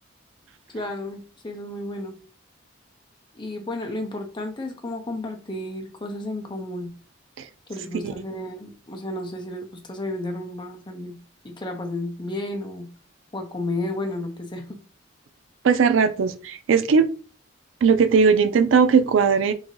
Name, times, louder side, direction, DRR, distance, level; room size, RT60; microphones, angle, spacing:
voice 1, 0.7-2.2 3.3-6.9 7.7-11.2 11.4-12.9 13.3-14.8, left 1 dB, 25° left, 0.6 m, -32 dB
voice 2, 15.6-17.1 17.8-19.5, right 5 dB, 80° right, 0.4 m, -18 dB
3.7 x 2.6 x 3.1 m
head